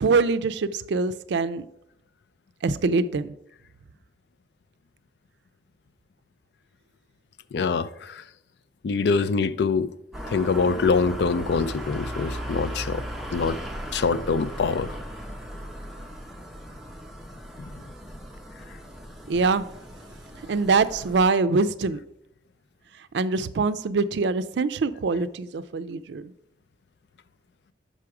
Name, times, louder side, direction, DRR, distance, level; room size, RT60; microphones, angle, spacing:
voice 1, 0.0-1.7 2.6-3.3 19.3-19.6 20.5-22.0 23.1-26.3, right 4 dB, 75° right, 0.4 m, -24 dB
voice 2, 7.5-8.2 8.8-9.9 10.3-13.0 13.3-13.6 13.9-15.0, left 4 dB, 70° left, 0.4 m, -24 dB
sound 1, 10.1-21.2, equal, ahead, 0.9 m, -37 dB
5.5 x 4.8 x 5.8 m
head